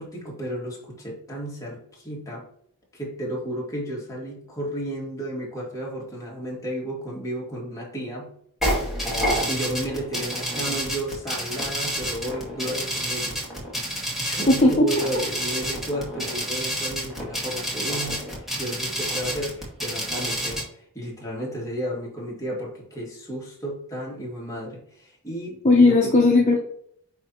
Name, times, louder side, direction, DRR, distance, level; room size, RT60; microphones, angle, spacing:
voice 1, 0.0-2.4 2.9-8.3 9.0-13.4 14.2-26.1, right 1 dB, 15° left, -4 dB, 2.2 m, -33 dB
sound 1, 8.6-20.6, equal, ahead, 2.1 m, -29 dB
voice 2, 14.5-14.9 25.6-26.6, left 2 dB, 30° left, 0 dB, 0.8 m, -16 dB
9.5 x 3.5 x 2.9 m, 0.63 s
head